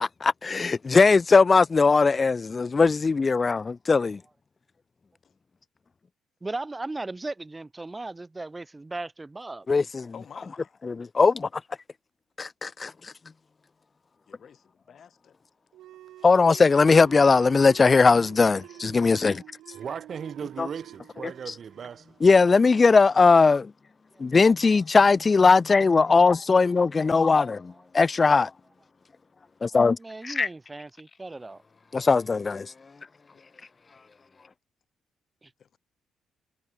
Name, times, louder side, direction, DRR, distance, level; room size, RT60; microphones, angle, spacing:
voice 1, 0.0-4.2 9.7-10.1 10.8-11.5 12.4-12.9 16.2-19.4 22.2-23.7 24.2-28.5 29.6-30.0 30.2-30.5 31.9-32.7, left 4 dB, 30° left, 0.3 m, -19 dB
voice 2, 6.4-9.7 19.4-19.5 24.1-24.3 27.1-27.2 27.7-27.8 29.7-31.6 35.4-35.5, right 2 dB, 20° right, 1.9 m, -37 dB
voice 3, 10.1-10.7 14.3-15.3 33.3-33.4 35.6-35.8, left 7 dB, 55° left, 2.5 m, -50 dB
sound 1, 15.7-22.9, right 14 dB, 85° right, 6.2 m, -48 dB
voice 4, 19.7-22.2, right 7 dB, 50° right, 4.8 m, -37 dB
cardioid pair, 90°, 0 cm